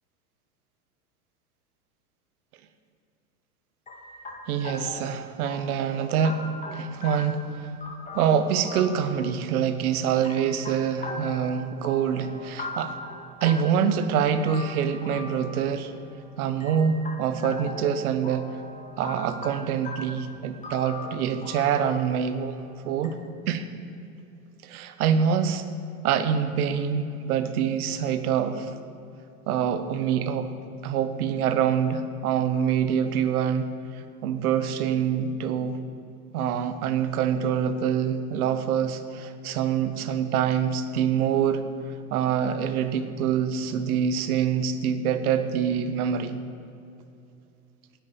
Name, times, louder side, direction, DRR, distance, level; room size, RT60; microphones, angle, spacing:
sound 1, 3.9-23.1, left 2 dB, 15° left, 2.0 m, -41 dB
voice 1, 4.5-6.4 6.7-7.7 8.1-12.9 13.4-15.9 16.4-18.5 19.0-23.2 23.5-23.7 24.6-25.6 26.0-28.7 29.5-30.5 30.8-33.7 34.2-35.8 36.3-41.6 42.1-46.4, right 8 dB, 65° right, 10 dB, 1.2 m, -25 dB
9.8 x 8.8 x 8.5 m, 2.7 s
hypercardioid pair, 110°, 47 cm